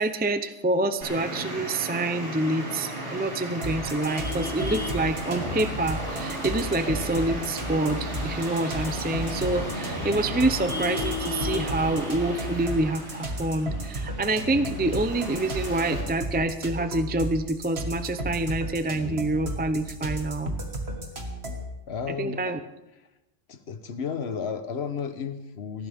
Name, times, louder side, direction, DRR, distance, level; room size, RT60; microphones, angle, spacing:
voice 1, 0.0-20.5 22.2-22.6, right 2 dB, 15° right, 10 dB, 0.4 m, -27 dB
Traffic noise roadway noise, 1.0-16.0, equal, 85° right, 4.2 m, -34 dB
sound 1, 3.6-21.7, right 1 dB, 65° right, 2.2 m, -34 dB
voice 2, 21.9-22.6 23.5-25.9, left 6 dB, 70° left, 9 dB, 1.3 m, -33 dB
19.5 x 15.0 x 3.6 m, 1.0 s
omnidirectional pair, 1.1 m